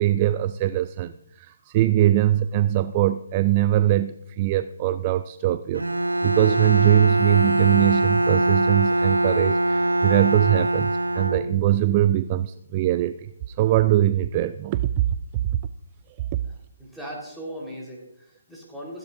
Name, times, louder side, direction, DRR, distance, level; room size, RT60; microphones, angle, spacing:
voice 1, 0.0-5.8 6.2-14.9 15.5-15.6 16.3-16.4, right 13 dB, 30° right, 14 dB, 0.4 m, -22 dB
Bowed string instrument, 5.7-11.9, right 1 dB, 85° right, 1.2 m, -23 dB
voice 2, 16.8-19.0, equal, ahead, -4 dB, 4.0 m, -38 dB
16.0 x 15.5 x 2.6 m, 0.76 s
figure-of-eight pair, 140°, 0 cm